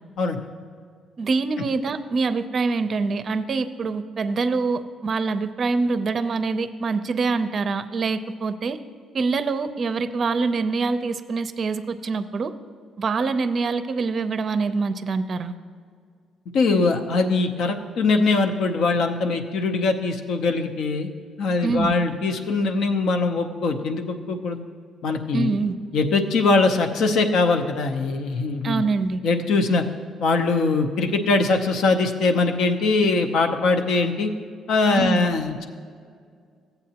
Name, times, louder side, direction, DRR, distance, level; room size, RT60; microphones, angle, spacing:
voice 1, 1.2-8.8 9.1-12.5 13.0-15.5 21.6-22.0 25.3-25.8 28.6-29.2 34.9-35.3, right 4 dB, 45° right, 11 dB, 0.5 m, -25 dB
voice 2, 16.5-21.1 21.4-24.6 25.0-25.5 25.9-28.8 29.2-29.8 30.2-34.3 34.7-35.7, left 3 dB, 70° left, 5 dB, 0.7 m, -22 dB
15.0 x 8.0 x 2.9 m, 2.1 s
cardioid pair, 105°, 0 cm